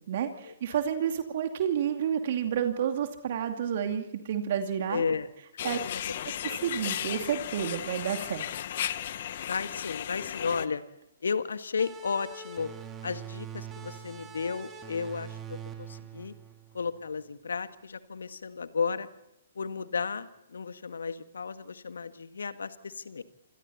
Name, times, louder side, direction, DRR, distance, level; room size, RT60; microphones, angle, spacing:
voice 1, 0.1-5.0 5.6-5.8 6.4-8.5, right 8 dB, 50° right, 5 dB, 2.5 m, -30 dB
voice 2, 4.9-5.3 5.9-6.3 9.4-10.8 11.2-12.7 13.0-16.3 16.7-19.1 19.5-23.2, left 5 dB, 70° left, 10 dB, 1.7 m, -33 dB
sound 1, 5.6-10.7, left 11 dB, 50° left, 1.2 m, -35 dB
sound 2, 11.8-17.1, right 7 dB, 20° right, 2.9 m, -43 dB
28.5 x 25.5 x 4.3 m, 0.89 s
figure-of-eight pair, 125°, 0 cm